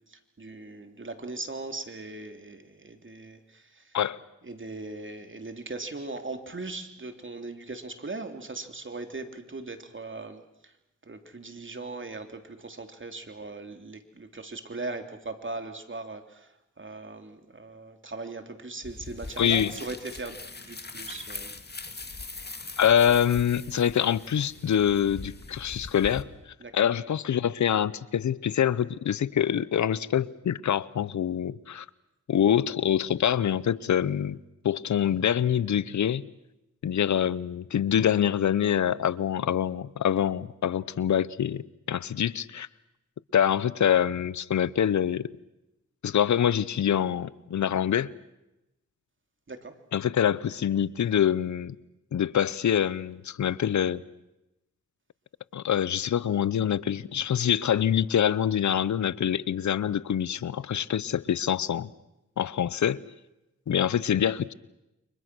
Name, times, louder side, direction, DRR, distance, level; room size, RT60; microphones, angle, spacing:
voice 1, 0.1-4.0 4.4-10.7 11.0-21.5 26.6-26.9 49.5-49.8, right 3 dB, 40° right, 3.3 m, -39 dB
sound 1, 18.8-26.2, left 3 dB, 35° left, 2.4 m, -41 dB
voice 2, 19.4-19.7 22.8-26.3 26.7-31.9 32.3-34.4 34.6-36.3 36.8-42.7 43.3-45.3 46.0-48.1 49.9-51.8 52.1-54.0 55.5-61.9 62.4-63.0 63.7-64.5, left 9 dB, 75° left, 0.8 m, -25 dB
29.0 x 25.0 x 6.2 m
cardioid pair, 50°, 29 cm